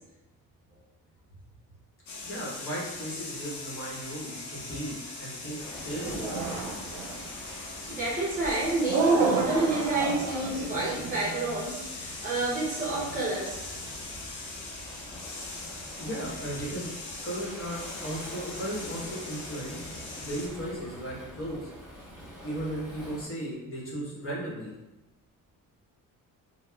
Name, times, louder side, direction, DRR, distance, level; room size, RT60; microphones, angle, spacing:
sound 1, 2.1-20.5, left 3 dB, 60° left, 0.7 m, -41 dB
voice 1, 2.2-6.2 16.0-16.9 17.2-19.8 20.2-21.6 22.4-24.7, right 1 dB, 40° left, -5 dB, 1.0 m, -36 dB
Waves surf, 5.6-23.3, equal, 10° left, 1.4 m, -46 dB
sound 2, 6.0-7.3 8.9-11.4, right 4 dB, 70° right, 0.5 m, -30 dB
voice 2, 7.9-13.9, right 2 dB, 25° right, -5 dB, 0.7 m, -28 dB
4.0 x 2.0 x 2.3 m, 0.98 s
cardioid pair, 135°, 34 cm